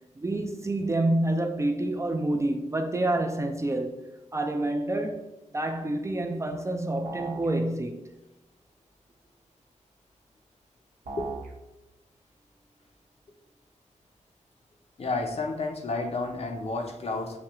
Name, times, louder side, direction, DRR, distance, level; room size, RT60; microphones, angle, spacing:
voice 1, 0.2-8.1, right 1 dB, 20° right, 0.4 m, -28 dB
sound 1, 7.1-7.5 11.1-11.5, right 3 dB, 85° right, 0.9 m, -37 dB
voice 2, 15.0-17.4, left 3 dB, 50° left, 0.6 m, -31 dB
5.9 x 2.3 x 3.0 m
wide cardioid pair, 90°, 13 cm